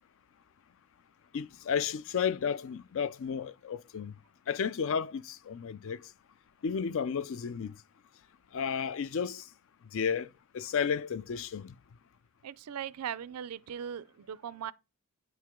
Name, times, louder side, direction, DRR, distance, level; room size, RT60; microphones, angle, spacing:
voice 1, 1.3-4.1 4.5-6.0 6.6-7.7 8.5-9.4 9.9-10.3 10.5-11.7, left 6 dB, 60° left, 0.4 m, -32 dB
voice 2, 12.4-14.7, right 8 dB, 85° right, 0.4 m, -39 dB
9.2 x 4.7 x 3.6 m
head